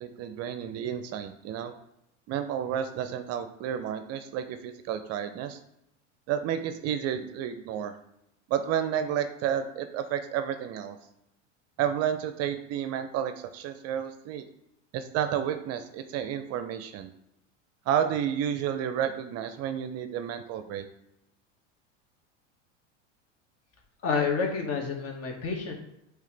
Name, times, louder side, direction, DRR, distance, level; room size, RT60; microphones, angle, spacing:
voice 1, 0.0-1.7 2.3-5.6 6.3-7.9 8.5-11.0 11.8-14.5 14.9-17.1 17.9-20.9, right 9 dB, 45° right, 10 dB, 0.6 m, -31 dB
voice 2, 24.0-25.7, left 5 dB, 40° left, 1 dB, 1.8 m, -29 dB
8.4 x 3.4 x 3.3 m, 0.82 s
hypercardioid pair, 95°, 37 cm